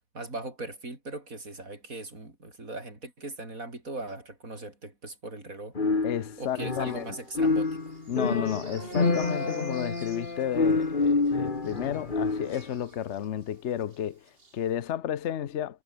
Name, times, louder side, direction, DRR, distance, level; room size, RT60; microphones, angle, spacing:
voice 1, 0.1-5.8 6.4-7.8, right 2 dB, 90° right, 5.9 m, -39 dB
sound 1, 5.7-7.1 7.3-12.6, left 3 dB, 35° left, 2.1 m, -27 dB
voice 2, 6.0-7.1 8.1-15.8, left 10 dB, 60° left, 1.1 m, -32 dB
sound 2, 6.8-13.5 13.8-14.0 14.3-14.6, right 3 dB, 45° right, 2.7 m, -47 dB
omnidirectional pair, 1.4 m